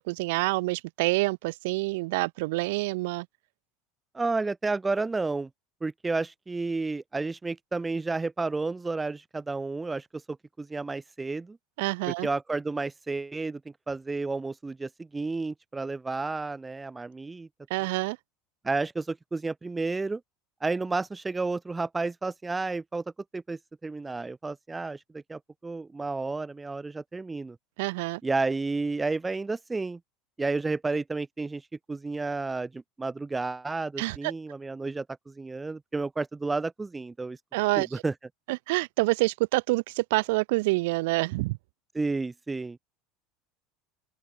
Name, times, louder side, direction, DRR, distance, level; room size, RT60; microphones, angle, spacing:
voice 1, 0.0-3.3 11.8-12.3 17.7-18.2 27.8-28.2 34.0-34.3 37.5-38.0 38.5-41.6, right 23 dB, 80° right, 0.5 m, -27 dB
voice 2, 4.1-5.5 5.8-11.6 12.2-13.6 13.9-17.5 18.6-20.2 20.6-23.0 23.3-27.6 28.2-30.0 30.4-31.6 31.9-37.4 37.8-38.1 41.9-42.8, right 3 dB, 10° right, 1.8 m, -31 dB
open air
cardioid pair, 160°, 0 cm